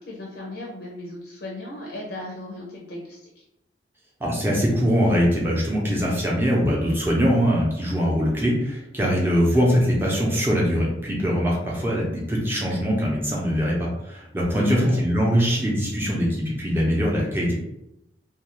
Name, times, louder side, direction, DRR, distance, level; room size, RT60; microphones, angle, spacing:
voice 1, 0.0-3.4 14.5-15.0, left 1 dB, 70° left, -2 dB, 0.6 m, -37 dB
voice 2, 4.2-17.5, equal, 15° right, -4 dB, 0.7 m, -22 dB
2.4 x 2.4 x 3.0 m, 0.86 s
head